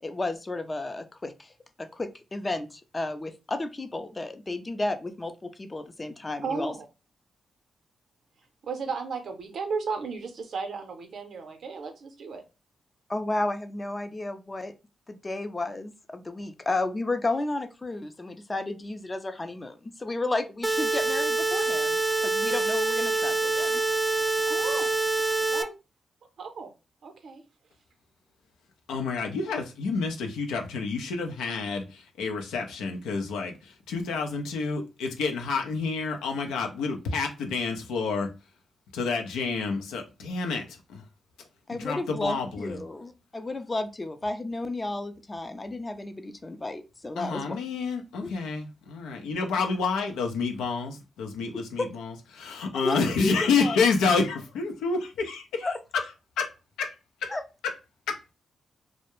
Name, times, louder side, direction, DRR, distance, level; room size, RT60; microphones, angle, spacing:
voice 1, 0.0-1.5 1.8-6.7 13.1-14.7 15.1-23.8 41.7-47.6 48.2-48.3 51.8-51.9 52.8-53.8 55.6-55.8 57.3-57.4, left 2 dB, 30° left, 0.5 m, -32 dB
voice 2, 6.4-6.9 8.6-12.4 24.5-24.9 25.5-25.7 26.4-26.7 27.0-27.4, right 5 dB, 70° right, 0.6 m, -34 dB
sound 1, 20.6-25.6, right 2 dB, 25° right, 0.4 m, -26 dB
voice 3, 28.9-38.3 38.9-41.0 41.7-42.8 47.2-56.0 56.4-56.5 56.8-56.9 57.2-57.3 58.1-58.2, left 4 dB, 85° left, 0.5 m, -29 dB
2.3 x 2.0 x 3.0 m
supercardioid pair, 45°, 0 cm